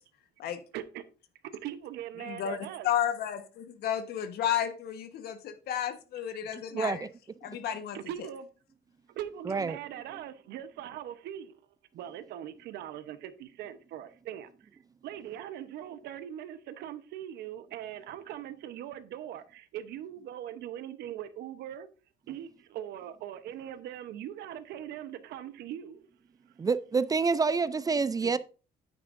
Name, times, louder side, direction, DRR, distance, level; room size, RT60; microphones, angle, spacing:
voice 1, 0.7-1.0 1.5-2.9 7.9-8.5 9.1-11.6 11.9-14.7 15.0-21.9 22.3-26.1 28.2-28.3, right 11 dB, 75° right, 0.9 m, -41 dB
voice 2, 2.2-7.1 7.4-8.0, left 10 dB, 70° left, 1.3 m, -32 dB
voice 3, 6.7-7.1 7.5-7.6 9.5-9.8 26.6-28.4, right 4 dB, 20° right, 0.4 m, -27 dB
9.1 x 9.0 x 2.6 m
cardioid pair, 110°, 17 cm